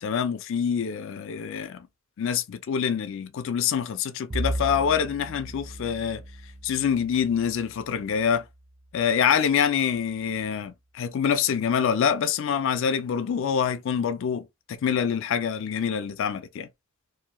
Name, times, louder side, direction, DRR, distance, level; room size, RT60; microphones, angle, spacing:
voice 1, 0.0-1.8 2.2-6.2 6.6-8.4 8.9-16.7, left 7 dB, 60° left, 0.4 m, -26 dB
Bowed string instrument, 4.3-8.9, right 1 dB, 25° right, 0.4 m, -36 dB
2.7 x 2.2 x 2.9 m
head